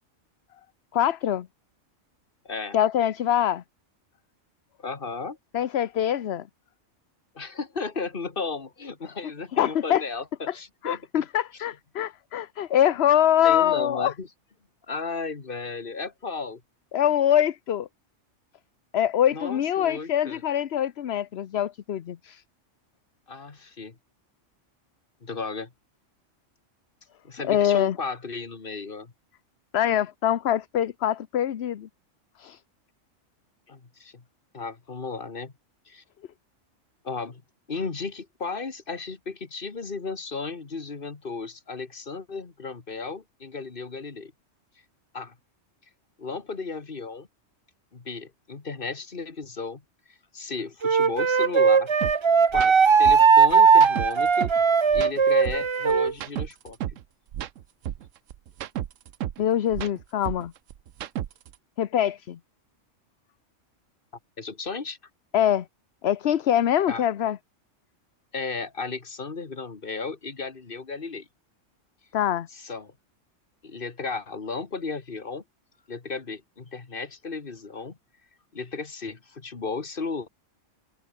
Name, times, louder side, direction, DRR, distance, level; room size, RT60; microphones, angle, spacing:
voice 1, 0.9-1.5 2.7-3.6 5.5-6.4 9.5-10.0 10.8-14.1 16.9-17.9 18.9-22.4 27.4-28.0 29.7-31.9 32.4-32.6 59.4-60.5 61.8-62.4 65.3-65.7 66.0-67.4 72.1-72.5, left 10 dB, 60° left, 1.0 m, -24 dB
voice 2, 2.5-2.8 4.8-5.4 7.4-11.0 13.4-14.3 14.9-16.6 19.3-20.4 23.3-24.0 25.2-25.7 27.2-29.1 33.7-34.2 34.5-35.5 35.9-36.0 37.0-37.4 37.7-44.3 45.1-45.3 46.2-47.3 47.9-49.8 50.1-51.9 52.5-54.5 54.9-56.8 64.4-65.0 66.9-67.0 68.3-71.3 72.5-72.9 73.6-75.4 75.9-78.0 78.5-80.3, left 4 dB, 45° left, 2.0 m, -34 dB
Wind instrument woodwind instrument, 50.8-56.1, right 5 dB, 35° right, 0.5 m, -18 dB
sound 1, 52.0-52.1 52.5-52.7 53.0-54.6 54.9-57.0 57.3-59.4 59.7-61.5, right 11 dB, 80° right, 1.1 m, -33 dB
omnidirectional pair, 1.3 m